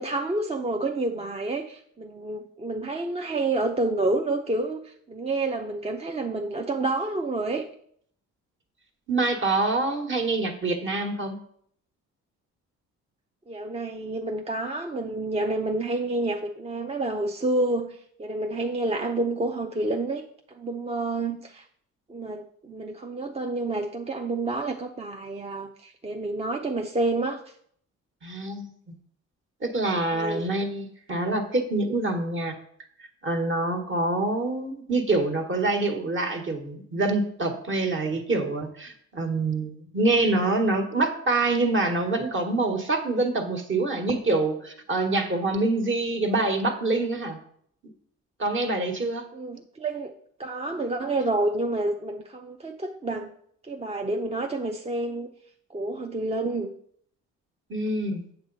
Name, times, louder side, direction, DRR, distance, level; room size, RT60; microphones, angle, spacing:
voice 1, 0.0-7.7 13.5-20.2 20.5-21.6 22.1-27.4 30.1-30.4 49.3-50.1 50.4-53.3 53.6-55.3 55.7-56.7, right 2 dB, 20° right, 3 dB, 0.6 m, -29 dB
voice 2, 9.1-11.4 28.2-28.9 29.6-32.6 33.2-47.4 48.4-49.3 57.7-58.2, right 2 dB, 40° right, 4 dB, 1.5 m, -26 dB
7.9 x 7.0 x 4.0 m, 0.65 s
cardioid pair, 90°, 30 cm